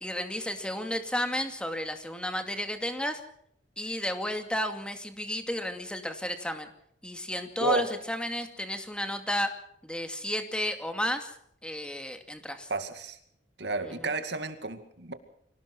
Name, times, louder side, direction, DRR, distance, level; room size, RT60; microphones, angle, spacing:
voice 1, 0.0-3.2 3.8-6.7 7.0-9.5 9.8-11.3 11.6-12.7 13.9-14.1, left 1 dB, 5° left, 6 dB, 2.3 m, -32 dB
voice 2, 12.7-13.2 13.6-15.1, right 3 dB, 65° right, 9 dB, 2.3 m, -31 dB
25.0 x 18.0 x 6.1 m, 0.69 s
head